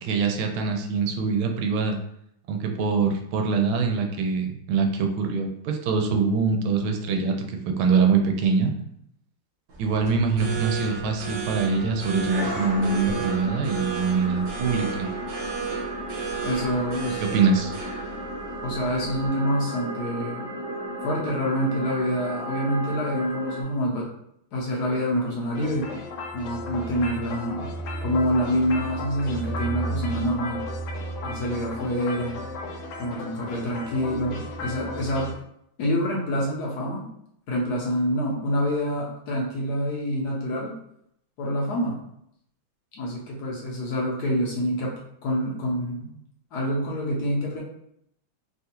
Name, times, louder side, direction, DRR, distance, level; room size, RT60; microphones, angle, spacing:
voice 1, 0.0-2.0 2.5-8.7 9.8-15.1 17.2-17.7, right 5 dB, 90° right, 4 dB, 1.4 m, -24 dB
sound 1, 9.7-19.3, right 5 dB, 60° right, 1.1 m, -34 dB
sound 2, 12.3-23.6, equal, 35° right, 1.1 m, -35 dB
voice 2, 16.4-17.2 18.6-20.5 21.0-24.1 24.5-25.9 26.3-27.7 28.0-30.6 31.2-32.4 33.0-35.3 35.8-37.1 37.5-40.7 41.4-42.0 42.9-44.9 45.2-46.1 46.5-47.6, equal, 65° left, -3 dB, 1.0 m, -26 dB
sound 3, 25.5-35.3, equal, 80° left, 1.4 m, -34 dB
3.3 x 2.3 x 2.8 m, 0.74 s
omnidirectional pair, 2.2 m